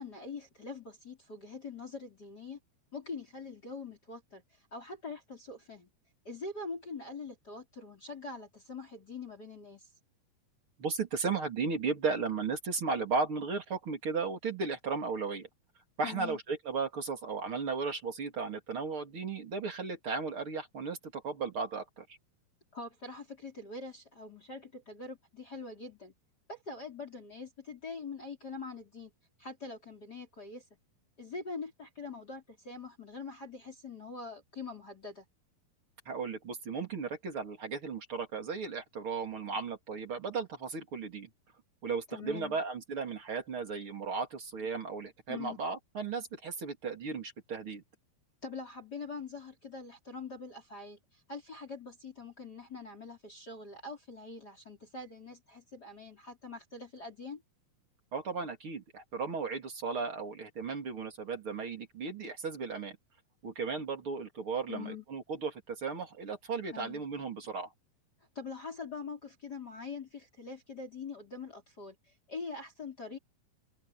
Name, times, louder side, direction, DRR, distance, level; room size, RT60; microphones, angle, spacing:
voice 1, 0.0-2.6 2.9-5.9 6.2-9.9 16.0-16.4 22.7-26.1 26.5-29.1 29.4-30.6 31.2-35.3 42.1-42.6 45.3-45.6 48.4-57.4 64.7-65.0 66.7-67.0 68.3-73.2, left 4 dB, 25° left, 4.6 m, -44 dB
voice 2, 10.8-15.5 16.0-22.0 36.0-41.3 41.8-47.8 58.1-63.0 63.4-67.7, right 4 dB, 35° right, 3.2 m, -35 dB
omnidirectional pair, 4.6 m